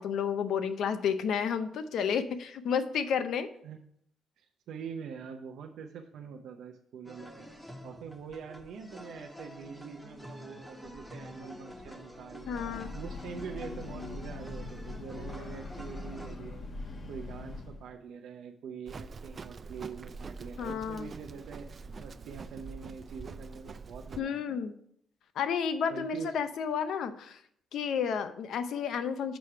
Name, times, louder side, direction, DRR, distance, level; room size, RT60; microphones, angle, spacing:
voice 1, 0.0-3.5 12.5-12.9 20.6-21.1 24.2-24.7 25.4-27.4 27.7-29.4, left 7 dB, 75° left, 10 dB, 0.7 m, -31 dB
voice 2, 4.4-7.5 7.8-12.6 12.9-21.7 22.0-24.4 25.9-26.3, right 6 dB, 75° right, 2 dB, 0.6 m, -44 dB
sound 1, 7.0-16.4, left 1 dB, 5° left, 1.2 m, -48 dB
Breathing / Train, 12.2-18.0, left 2 dB, 40° left, 1.0 m, -42 dB
Livestock farm animals working animals, 18.9-24.2, right 4 dB, 40° right, 0.4 m, -44 dB
6.2 x 4.9 x 5.7 m, 0.68 s
cardioid pair, 90°, 0 cm